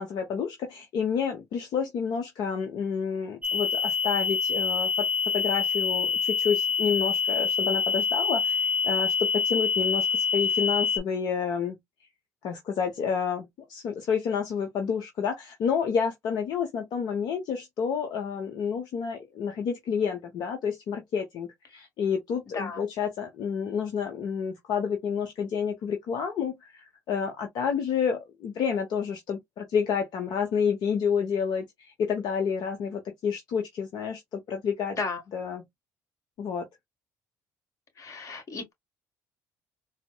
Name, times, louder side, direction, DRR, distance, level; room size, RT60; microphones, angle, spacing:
voice 1, 0.0-5.1 5.3-11.8 12.4-35.0 35.3-35.6 36.4-36.7, left 6 dB, 65° left, 0.8 m, -29 dB
sound 1, 3.4-11.0, left 5 dB, 15° right, 0.6 m, -26 dB
voice 2, 22.5-22.9 34.9-35.2 38.0-38.7, left 4 dB, 45° left, 1.5 m, -34 dB
4.0 x 2.1 x 2.2 m
supercardioid pair, 80°, 8 cm